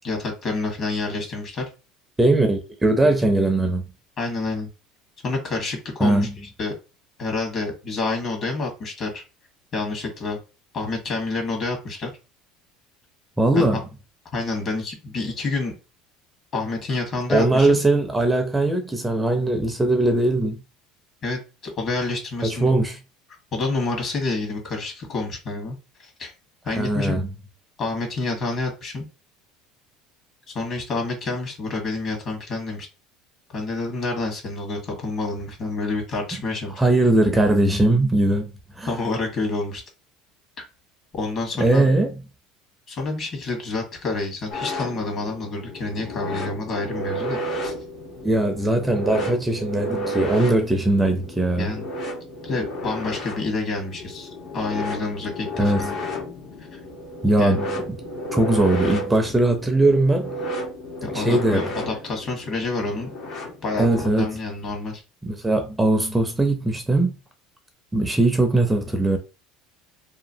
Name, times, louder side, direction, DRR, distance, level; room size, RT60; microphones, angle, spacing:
voice 1, 0.0-1.6 4.2-4.7 5.2-6.3 6.6-6.7 7.2-9.2 9.7-10.4 10.7-12.1 13.5-13.8 14.3-15.7 16.5-17.8 21.2-22.7 23.5-26.3 26.6-27.2 27.8-29.0 30.5-32.9 33.5-36.8 38.9-39.8 41.1-41.8 42.9-47.7 51.6-51.9 52.4-55.9 56.7-56.8 57.4-57.6 61.0-63.1 63.6-65.0, left 3 dB, 45° left, 1.5 m, -28 dB
voice 2, 2.2-3.9 6.0-6.3 13.4-13.8 17.3-20.6 22.4-23.0 26.7-27.3 36.8-38.5 38.8-38.9 41.6-42.1 48.2-51.7 55.6-55.9 57.2-57.7 58.3-60.3 61.1-61.7 63.8-64.4 65.2-67.2 67.9-69.2, right 2 dB, 15° right, 0.6 m, -20 dB
sound 1, 44.5-64.1, equal, 60° left, 1.1 m, -32 dB
3.0 x 2.3 x 2.7 m
supercardioid pair, 95°, 0 cm